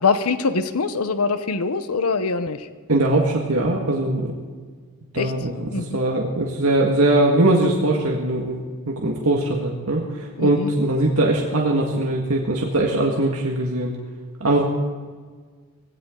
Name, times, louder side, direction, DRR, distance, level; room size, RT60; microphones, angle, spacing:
voice 1, 0.0-2.7 5.2-5.3 5.7-6.0 10.4-10.7, left 4 dB, 80° left, 11 dB, 0.9 m, -23 dB
voice 2, 2.9-4.3 5.1-14.0 14.4-14.6, right 2 dB, 80° right, -1 dB, 1.8 m, -21 dB
19.0 x 16.0 x 3.9 m, 1.5 s
head